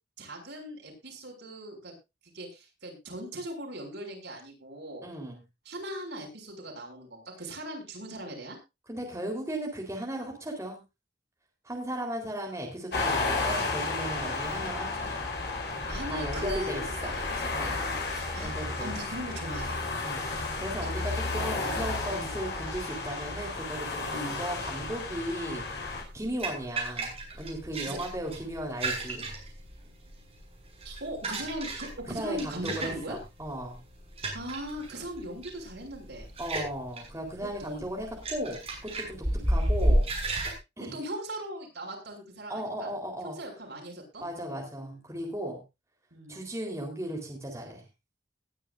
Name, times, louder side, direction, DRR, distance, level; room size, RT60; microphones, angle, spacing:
voice 1, 0.2-1.9 2.3-5.1 5.6-8.6 14.1-14.4 15.9-19.8 20.8-20.9 22.1-22.3 24.0-24.4 27.9-28.0 30.8-33.2 34.3-36.3 37.4-37.9 39.2-39.5 40.9-42.9 43.2-44.2 44.7-45.0 46.1-46.4, right 1 dB, 80° right, 0 dB, 6.5 m, -39 dB
voice 2, 5.0-5.4 8.9-10.8 11.6-15.3 15.6-15.9 16.1-17.1 17.5-17.8 18.4-18.9 20.0-24.0 24.4-29.3 32.1-33.8 36.4-40.1 40.8-41.0 42.5-43.4 44.2-45.6 46.3-47.8, right 1 dB, 15° right, 0 dB, 4.0 m, -36 dB
sound 1, 12.9-26.0, left 3 dB, 65° left, 5.0 m, -32 dB
sound 2, 25.8-40.5, right 1 dB, 35° right, 6.5 m, -33 dB
20.5 x 10.5 x 2.6 m, 0.25 s
head